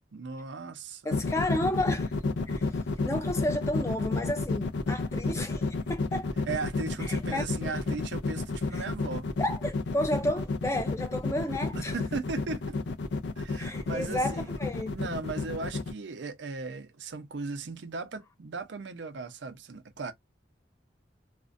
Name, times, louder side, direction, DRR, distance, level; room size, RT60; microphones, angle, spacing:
voice 1, 0.1-1.2 6.5-9.3 11.7-12.8 13.4-14.5 14.9-20.1, right 4 dB, 80° right, 0.5 m, -37 dB
voice 2, 1.0-2.1 2.5-2.8 3.1-6.3 7.1-7.7 8.7-8.8 9.4-12.0 13.6-15.0, left 1 dB, 15° left, 0.4 m, -32 dB
sound 1, 1.1-15.9, left 3 dB, 75° left, 0.4 m, -30 dB
2.4 x 2.1 x 2.5 m
head